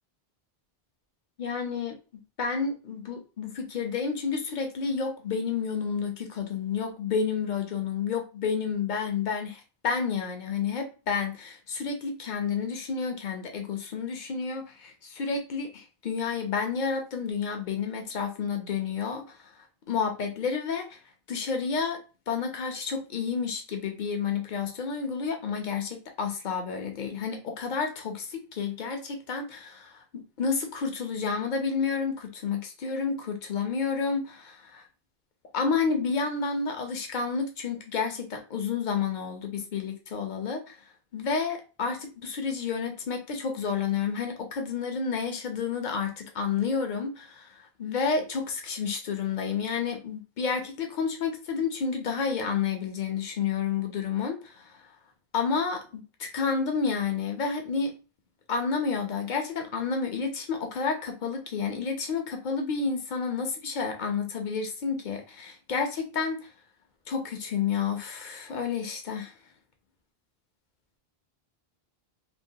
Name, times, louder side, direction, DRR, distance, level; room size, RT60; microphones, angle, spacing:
voice 1, 1.4-2.0 2.4-19.4 19.9-20.9 21.3-22.0 22.3-34.8 35.5-40.8 41.1-47.5 47.8-54.7 55.3-57.9 58.5-66.5 67.1-69.3, left 5 dB, 55° left, 4 dB, 0.7 m, -30 dB
2.9 x 2.2 x 2.7 m, 0.32 s
omnidirectional pair, 1.0 m